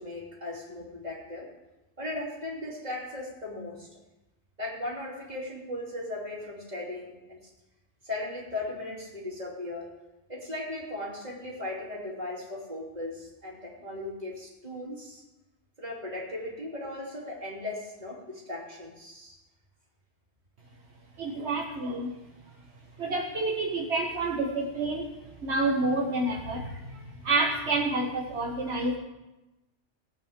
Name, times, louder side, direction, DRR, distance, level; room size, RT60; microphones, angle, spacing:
voice 1, 0.0-1.5 2.0-3.9 4.6-7.5 8.0-9.9 10.3-15.2 15.8-19.4, left 2 dB, 35° right, -4 dB, 3.2 m, -37 dB
voice 2, 21.2-22.2 23.0-25.1 25.4-29.0, right 2 dB, 65° right, 0 dB, 1.4 m, -29 dB
19.0 x 8.9 x 3.6 m, 1.0 s
omnidirectional pair, 1.2 m